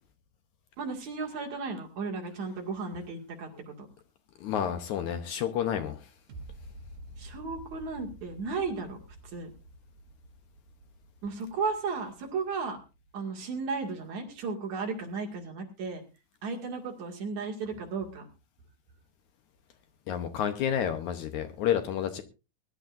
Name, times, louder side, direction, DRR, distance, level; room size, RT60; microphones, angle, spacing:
voice 1, 0.8-3.7 7.2-9.0 9.3-9.5 11.2-12.8 13.1-16.0 16.4-18.3, right 4 dB, 60° right, 1 dB, 3.4 m, -34 dB
voice 2, 4.4-6.1 20.1-22.2, left 9 dB, 70° left, 8 dB, 2.2 m, -30 dB
sound 1, 6.3-13.3 13.8-13.9, right 1 dB, 75° right, 3.4 m, -49 dB
21.5 x 11.5 x 2.6 m, 0.30 s
omnidirectional pair, 3.9 m